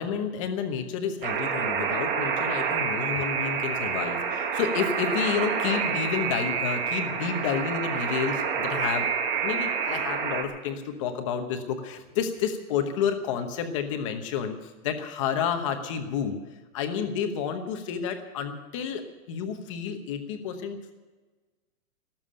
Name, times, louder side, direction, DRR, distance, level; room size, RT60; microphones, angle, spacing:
voice 1, 0.0-9.1 9.4-16.4 16.7-19.0 19.3-20.9, left 7 dB, 20° left, 7 dB, 1.0 m, -30 dB
Alarm, 1.2-10.4, right 6 dB, 35° right, 1.7 m, -28 dB
18.0 x 7.4 x 10.0 m, 1.3 s
hypercardioid pair, 180°, 43 cm